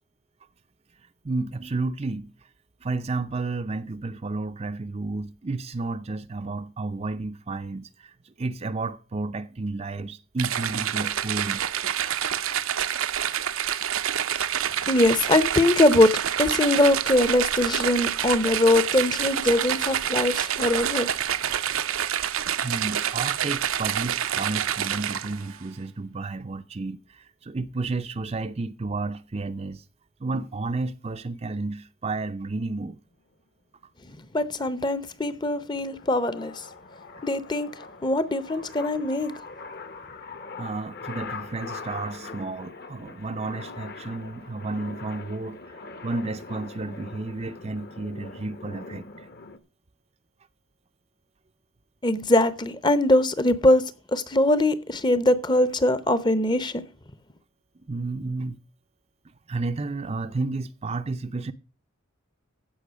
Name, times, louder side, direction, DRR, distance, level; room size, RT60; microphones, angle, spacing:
voice 1, 1.2-2.3 2.8-11.6 22.6-29.8 30.2-33.0 40.6-45.6 46.0-49.3 57.8-58.6 59.5-61.5, right 3 dB, 30° right, 0.5 m, -32 dB
sound 1, 10.4-25.5, right 10 dB, 75° right, 0.7 m, -27 dB
voice 2, 14.9-21.1 34.3-36.7 37.2-37.7 38.0-39.3 52.0-53.8 54.1-56.8, left 1 dB, 20° left, 0.7 m, -22 dB
sound 2, 34.3-49.6, left 4 dB, 45° left, 1.0 m, -42 dB
15.0 x 5.6 x 6.2 m
head